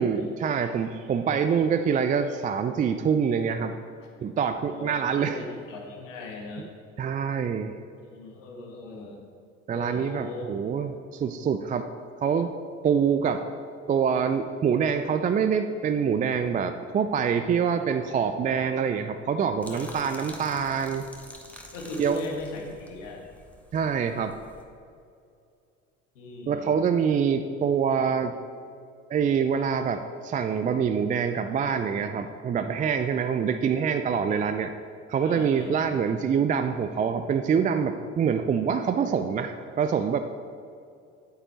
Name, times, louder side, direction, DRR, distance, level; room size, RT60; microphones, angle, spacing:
voice 1, 0.0-3.7 4.2-5.4 7.0-7.7 9.7-11.9 12.2-12.5 12.8-13.4 13.9-21.0 22.0-22.2 23.7-24.4 26.5-28.3 29.1-34.7 35.1-40.2, right 7 dB, 20° right, 8 dB, 0.4 m, -25 dB
voice 2, 4.6-6.7 8.0-9.2 9.7-10.7 19.7-20.3 21.7-23.2 26.2-26.8 35.2-35.9, left 2 dB, 70° left, 0 dB, 1.9 m, -39 dB
sound 1, 19.6-24.6, equal, 5° left, 1.2 m, -47 dB
8.9 x 8.7 x 4.4 m, 2.4 s
figure-of-eight pair, 65°, 39 cm